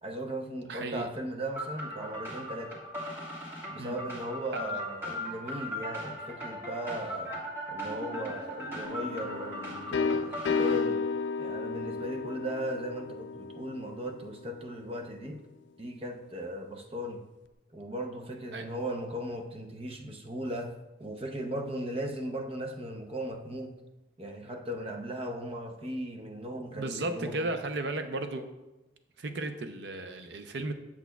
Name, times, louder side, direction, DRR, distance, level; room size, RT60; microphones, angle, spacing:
voice 1, 0.0-2.7 3.7-7.4 7.7-11.0 11.4-15.4 15.8-17.2 17.7-20.7 21.0-23.7 24.2-27.5, equal, 30° right, 3 dB, 0.6 m, -37 dB
voice 2, 0.7-1.1 3.8-4.0 4.5-4.6 18.5-18.6 26.7-28.5 29.2-30.7, right 2 dB, 70° right, 8 dB, 0.6 m, -34 dB
sound 1, 1.6-10.8, equal, 15° right, 1.6 m, -38 dB
sound 2, 8.8-14.5, left 4 dB, 80° left, 0.4 m, -33 dB
8.2 x 7.2 x 2.3 m, 1.0 s
head